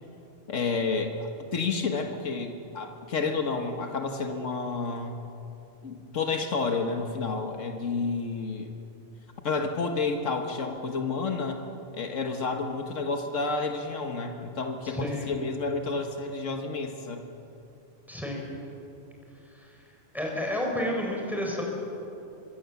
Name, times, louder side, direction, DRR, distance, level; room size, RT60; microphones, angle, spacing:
voice 1, 0.5-5.2 5.8-8.7 9.4-11.6 11.9-17.3, left 4 dB, 90° left, 5 dB, 1.7 m, -30 dB
voice 2, 14.8-15.3 18.1-18.4 19.5-19.7 20.1-21.6, left 1 dB, ahead, -1 dB, 4.2 m, -30 dB
25.5 x 22.0 x 7.1 m, 2.9 s
omnidirectional pair, 1.3 m